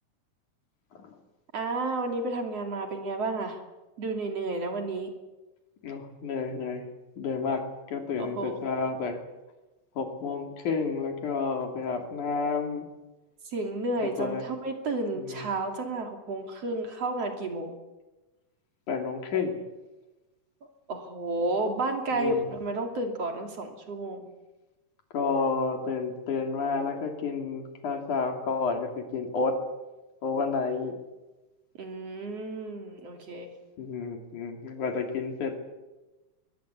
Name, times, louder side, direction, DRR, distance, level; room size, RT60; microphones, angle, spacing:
voice 1, 1.5-3.6 4.0-5.1 8.2-8.6 13.5-17.8 20.9-24.3 31.8-33.5, right 2 dB, 50° right, 4 dB, 3.7 m, -31 dB
voice 2, 5.8-6.8 7.2-9.2 10.0-12.9 14.2-14.4 15.1-15.5 18.9-19.6 22.1-22.4 25.1-29.5 30.2-30.9 33.8-35.6, left 4 dB, 70° left, 4 dB, 4.3 m, -30 dB
22.5 x 21.0 x 8.4 m, 1.1 s
omnidirectional pair, 3.7 m